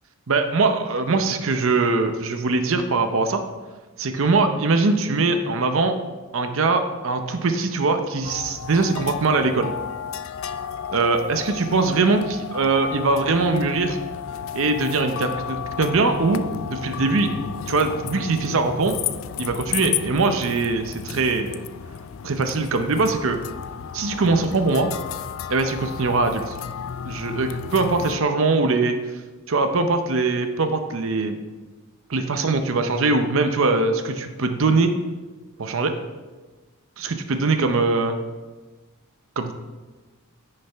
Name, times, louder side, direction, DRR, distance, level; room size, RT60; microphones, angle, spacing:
voice 1, 0.3-3.4 4.0-5.9 6.3-9.7 10.9-14.0 14.5-17.3 17.7-19.0 19.4-21.6 22.2-23.4 23.9-24.9 25.5-26.6 27.0-29.0 29.5-31.4 32.1-34.9 35.6-35.9 37.0-38.2 39.4-39.5, right 3 dB, 65° right, 7 dB, 0.6 m, -22 dB
sound 1, 8.2-28.2, left 8 dB, 65° left, 0.4 m, -33 dB
9.9 x 6.6 x 3.4 m, 1.3 s
head